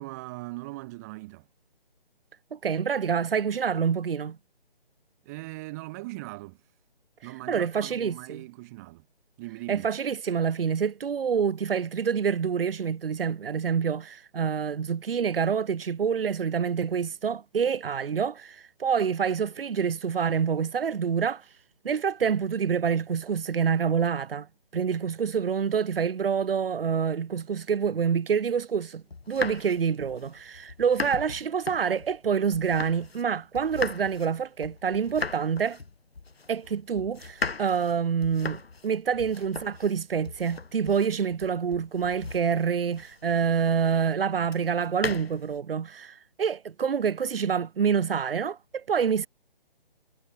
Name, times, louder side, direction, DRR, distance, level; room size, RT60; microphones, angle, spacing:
voice 1, 0.0-1.5 5.2-6.6 7.2-9.1 9.4-9.9, right 22 dB, 15° right, 3.9 m, -40 dB
voice 2, 2.5-4.4 7.5-8.4 9.7-21.4 21.8-24.5 24.7-35.8 36.5-49.3, right 7 dB, 70° right, 0.8 m, -27 dB
sound 1, 29.1-33.3 33.5-43.5 44.5-45.6, left 4 dB, 90° left, 1.9 m, -38 dB
figure-of-eight pair, 165°, 30 cm